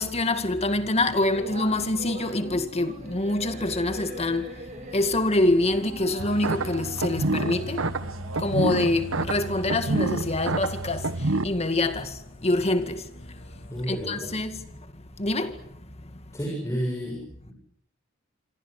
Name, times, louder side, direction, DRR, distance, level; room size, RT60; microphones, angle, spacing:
voice 1, 0.0-4.5 4.9-7.9 8.4-11.1 11.4-12.2 12.4-13.0 13.9-14.6 15.2-15.6, left 2 dB, 30° left, 2.1 m, -25 dB
sound 1, 1.3-10.3, right 1 dB, 40° right, 7.6 m, -42 dB
sound 2, 4.9-14.3, left 1 dB, 70° left, 7.0 m, -50 dB
sound 3, 6.2-11.4, right 2 dB, 80° right, 1.3 m, -28 dB
voice 2, 13.7-14.3 16.3-17.5, equal, 15° left, 6.8 m, -31 dB
27.0 x 26.5 x 6.6 m
head